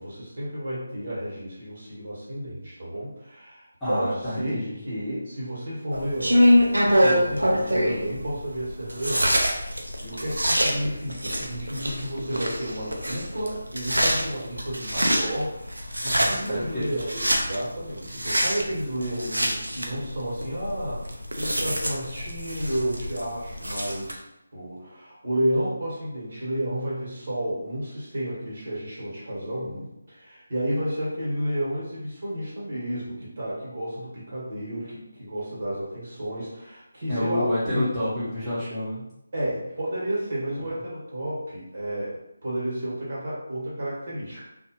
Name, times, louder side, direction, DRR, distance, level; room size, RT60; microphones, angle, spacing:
voice 1, 0.0-24.2 24.5-37.9 39.3-44.5, right 1 dB, 50° right, -7 dB, 1.4 m, -31 dB
voice 2, 3.8-4.8 16.2-17.0 37.1-39.1, left 1 dB, 5° left, -16 dB, 1.1 m, -29 dB
sound 1, 5.9-24.1, equal, 85° right, 0.5 m, -25 dB
2.6 x 2.4 x 2.9 m, 0.85 s
figure-of-eight pair, 160°, 0 cm